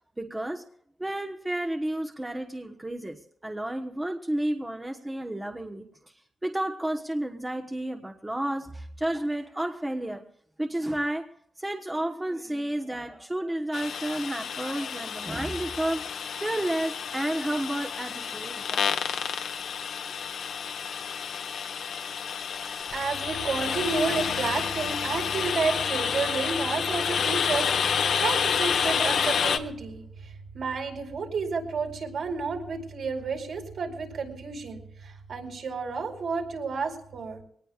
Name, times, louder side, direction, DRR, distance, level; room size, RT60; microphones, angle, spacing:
voice 1, 0.2-0.6 1.0-5.9 6.4-10.2 10.6-11.3 11.6-19.0, right 1 dB, 10° right, 3 dB, 1.2 m, -31 dB
sound 1, 13.7-29.6, left 7 dB, 75° left, 1.5 m, -29 dB
voice 2, 22.9-37.4, right 4 dB, 65° right, 2 dB, 4.7 m, -31 dB
24.0 x 19.0 x 2.5 m, 0.65 s
wide cardioid pair, 150°, 0 cm